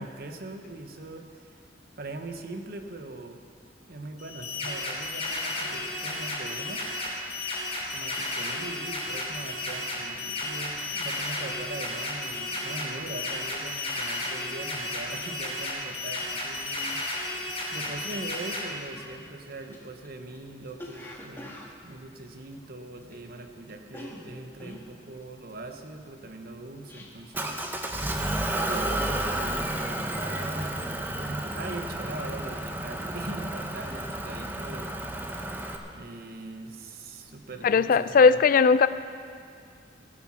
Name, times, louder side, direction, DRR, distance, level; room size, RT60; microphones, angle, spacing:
voice 1, 0.0-1.6 2.0-3.4 3.9-6.9 7.9-17.2 17.7-28.0 28.5-29.6 29.9-34.9 35.9-38.4, right 2 dB, 60° right, 5 dB, 1.0 m, -41 dB
sound 1, 4.2-18.6, left 2 dB, 35° left, 3.0 m, -33 dB
Cough, 18.9-23.4 23.6-27.5 27.8-28.1 28.4-28.9 29.3-29.9 30.2-31.9 32.2-32.5, left 1 dB, 15° left, 1.4 m, -47 dB
Motor vehicle (road) / Engine, 27.3-35.8, right 1 dB, 10° right, 0.8 m, -31 dB
voice 2, 37.6-38.9, left 5 dB, 50° left, 14 dB, 0.4 m, -18 dB
15.5 x 8.5 x 6.2 m, 2.3 s
head